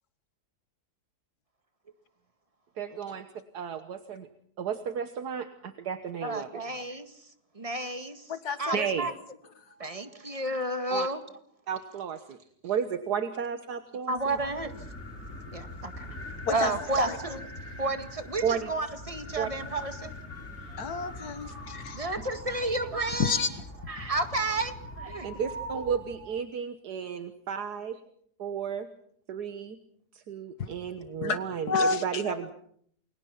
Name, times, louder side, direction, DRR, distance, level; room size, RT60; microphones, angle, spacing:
voice 1, 2.8-3.2 3.5-4.3 4.6-6.5 8.7-9.1 10.9-11.1 11.7-12.4 12.6-14.4 18.4-18.7 19.4-19.5 25.2-28.0 28.4-28.9 29.3-29.8 30.1-32.5, right 7 dB, 75° right, 9 dB, 1.7 m, -33 dB
voice 2, 6.2-7.1 7.6-8.2 8.6-9.1 9.8-11.2 14.1-14.7 15.5-16.1 16.5-17.5 17.8-20.8 21.6-23.4 23.9-25.3, right 2 dB, 20° right, 8 dB, 1.9 m, -32 dB
voice 3, 8.3-8.7 16.5-16.7 17.0-17.2 20.8-22.2 23.2-23.6 30.6-30.7 31.2-31.4 31.7-32.5, left 4 dB, 75° left, 10 dB, 2.2 m, -30 dB
sound 1, 14.2-26.3, left 1 dB, 45° left, 7.1 m, -42 dB
29.0 x 23.0 x 5.8 m, 0.65 s
omnidirectional pair, 1.7 m